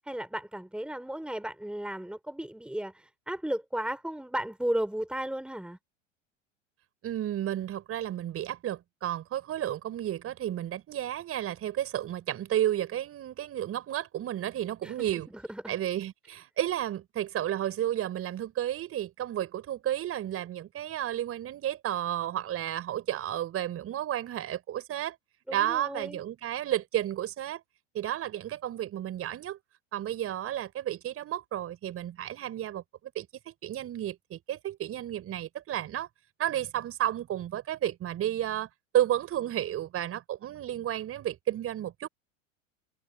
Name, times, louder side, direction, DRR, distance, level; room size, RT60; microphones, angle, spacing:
voice 1, 0.1-5.8 14.8-15.8 25.5-26.2, right 1 dB, 5° right, 5.4 m, -34 dB
voice 2, 7.0-15.3 15.7-25.2 25.5-27.6 27.9-29.6 29.9-32.8 33.1-36.1 36.4-38.7 38.9-42.1, right 12 dB, 35° right, 5.9 m, -32 dB
hypercardioid pair, 90°, 37 cm